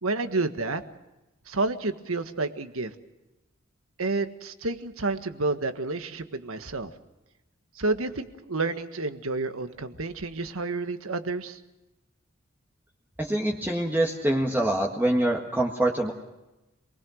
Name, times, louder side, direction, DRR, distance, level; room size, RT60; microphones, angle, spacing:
voice 1, 0.0-0.8 1.5-2.9 4.0-6.9 7.7-11.6, right 3 dB, 85° right, 8 dB, 1.5 m, -30 dB
voice 2, 13.2-16.1, right 1 dB, 10° right, 0 dB, 1.7 m, -25 dB
27.0 x 20.5 x 6.4 m, 1.0 s
head